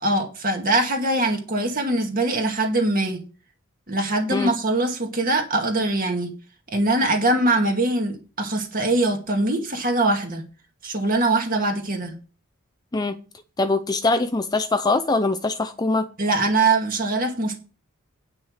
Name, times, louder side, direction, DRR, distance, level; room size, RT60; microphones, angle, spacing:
voice 1, 0.0-3.2 3.9-6.3 6.7-10.4 10.8-12.1 16.2-17.6, right 2 dB, 40° right, 2.2 m, -22 dB
voice 2, 13.6-16.1, left 3 dB, 20° left, 0.4 m, -22 dB
9.5 x 6.2 x 6.4 m
head